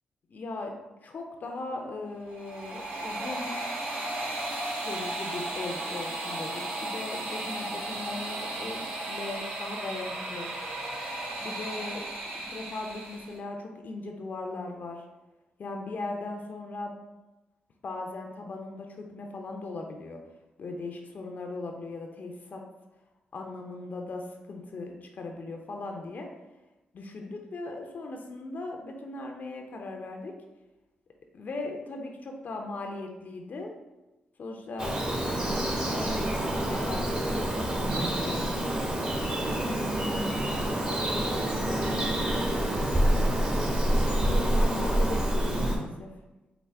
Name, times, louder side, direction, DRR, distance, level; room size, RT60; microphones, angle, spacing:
voice 1, 0.3-0.7 1.0-3.5 4.3-10.5 11.4-12.1 12.3-15.0 15.6-16.9 17.8-20.2 20.6-22.6 23.3-26.3 26.9-30.3 31.3-33.7 34.4-35.0 35.8-38.7 39.5-43.7 44.3-46.1, left 2 dB, 55° left, 2 dB, 0.5 m, -39 dB
sound 1, 2.2-13.4, right 1 dB, 55° right, 0.9 m, -35 dB
Bird vocalization bird call bird song, 34.8-45.8, right 1 dB, 30° right, 0.9 m, -27 dB
4.6 x 2.0 x 3.3 m, 1.0 s
supercardioid pair, 50°, 3 cm